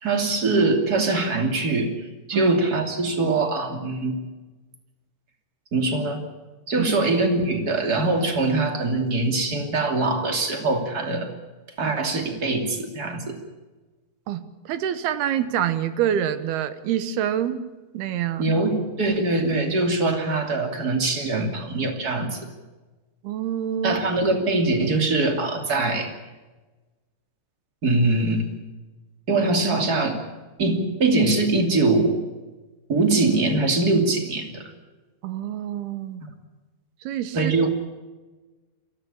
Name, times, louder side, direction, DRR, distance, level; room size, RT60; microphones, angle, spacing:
voice 1, 0.0-1.9 2.3-4.2 5.7-6.2 6.7-11.3 11.8-13.4 18.4-22.4 23.8-26.1 27.8-28.5 29.3-30.2 30.6-32.2 32.9-34.7 36.2-36.3 37.3-37.7, right 2 dB, 25° right, 5 dB, 2.5 m, -22 dB
voice 2, 14.3-17.6 17.9-18.5 23.2-24.0 35.2-36.2 37.0-37.5, right 10 dB, 70° right, 12 dB, 2.9 m, -26 dB
22.5 x 15.5 x 10.0 m, 1.2 s
omnidirectional pair, 5.0 m